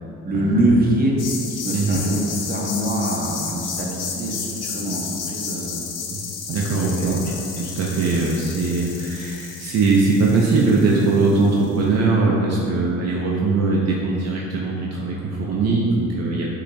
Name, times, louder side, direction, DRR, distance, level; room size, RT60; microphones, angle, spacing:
voice 1, 0.2-1.1 1.5-5.0 5.3-5.8 6.5-7.2, right 1 dB, 30° right, -3 dB, 1.0 m, -24 dB
sound 1, 1.2-11.7, left 5 dB, 60° left, 0.6 m, -32 dB
voice 2, 6.5-7.2 7.6-16.5, right 3 dB, 55° right, -3 dB, 0.6 m, -21 dB
6.4 x 2.9 x 2.7 m, 2.7 s
cardioid pair, 90°, 30 cm